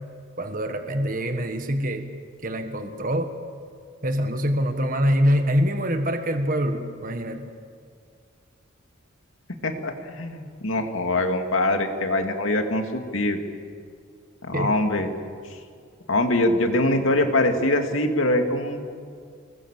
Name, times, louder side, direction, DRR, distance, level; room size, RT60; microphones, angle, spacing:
voice 1, 0.4-2.1 2.4-3.3 4.0-7.5 14.5-14.7, equal, 45° right, 6 dB, 1.4 m, -24 dB
voice 2, 9.6-13.4 14.4-15.1 16.1-18.8, left 1 dB, 90° left, 4 dB, 2.4 m, -23 dB
27.0 x 20.5 x 7.5 m, 2.2 s
head